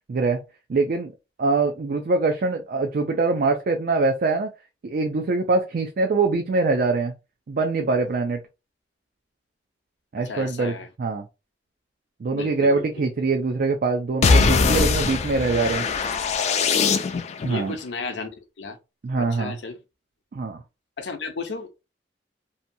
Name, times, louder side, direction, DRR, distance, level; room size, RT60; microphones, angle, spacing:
voice 1, 0.1-0.4 0.7-1.1 1.4-4.5 4.8-7.1 7.5-8.4 10.1-11.3 12.2-15.8 17.4-17.8 19.0-19.6 20.3-20.6, right 3 dB, 55° right, 0.4 m, -23 dB
voice 2, 10.2-10.9 12.3-12.8 17.5-18.3 18.6-18.8 19.2-19.8 21.0-21.8, left 4 dB, 70° left, 0.6 m, -33 dB
sound 1, 14.2-17.5, left 4 dB, 40° left, 0.3 m, -21 dB
2.8 x 2.2 x 2.6 m
head